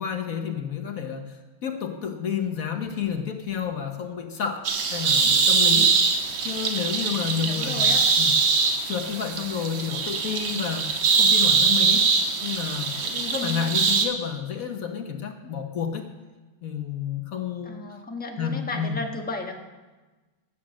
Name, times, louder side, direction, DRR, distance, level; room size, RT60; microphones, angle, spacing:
voice 1, 0.0-4.6 4.9-5.9 6.4-8.3 8.8-12.1 12.4-16.1 16.6-17.8 18.4-19.0, left 7 dB, 55° left, 5 dB, 1.2 m, -30 dB
sound 1, 4.6-14.1, right 5 dB, 75° right, 1.9 m, -22 dB
voice 2, 7.4-8.0 13.4-13.7 17.6-19.5, left 2 dB, 5° left, 2 dB, 0.8 m, -34 dB
16.0 x 7.5 x 6.3 m, 1.2 s
omnidirectional pair, 2.2 m